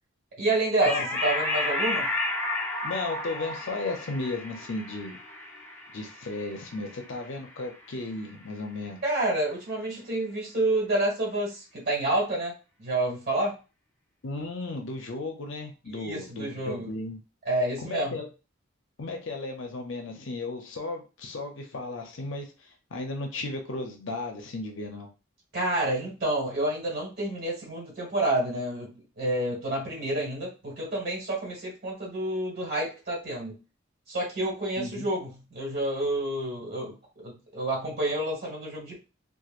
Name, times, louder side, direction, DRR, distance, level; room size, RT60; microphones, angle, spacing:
voice 1, 0.4-2.1 9.0-13.5 15.9-16.9 17.4-18.2 25.5-28.9 29.2-33.6 34.1-39.0, right 1 dB, 50° right, -3 dB, 1.5 m, -29 dB
sound 1, 0.8-7.7, left 2 dB, 10° left, 0.7 m, -32 dB
voice 2, 2.8-5.2 5.9-9.0 14.2-17.2 17.8-18.3 19.0-22.5 22.9-25.1 34.8-35.1, left 2 dB, 65° left, 3 dB, 0.6 m, -35 dB
2.9 x 2.4 x 2.4 m, 0.31 s
head